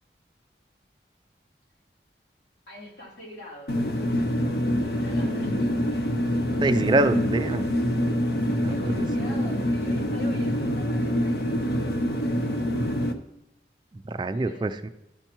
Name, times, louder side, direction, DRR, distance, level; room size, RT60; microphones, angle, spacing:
voice 1, 2.7-4.3 4.9-5.9 8.7-12.4 14.3-14.7, left 1 dB, 85° left, -5 dB, 2.9 m, -44 dB
sound 1, 3.7-13.1, equal, 65° left, 0.7 m, -25 dB
voice 2, 6.6-7.7 8.5-9.1 13.9-14.9, right 2 dB, 25° right, 10 dB, 0.3 m, -25 dB
12.5 x 5.4 x 3.0 m, 0.89 s
head